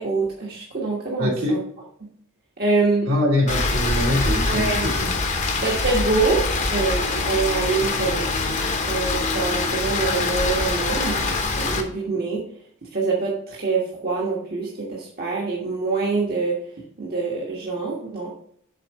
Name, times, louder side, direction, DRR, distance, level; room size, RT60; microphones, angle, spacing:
voice 1, 0.0-1.6 2.6-3.1 4.5-4.9 5.6-8.3 8.9-12.4 12.9-16.6 17.0-18.3, right 3 dB, 45° right, -4 dB, 1.4 m, -25 dB
voice 2, 1.2-1.6 3.1-5.1, left 1 dB, 80° right, -3 dB, 2.8 m, -23 dB
Rain, 3.5-11.8, left 3 dB, 35° left, 0.9 m, -24 dB
7.4 x 3.9 x 5.3 m, 0.64 s
head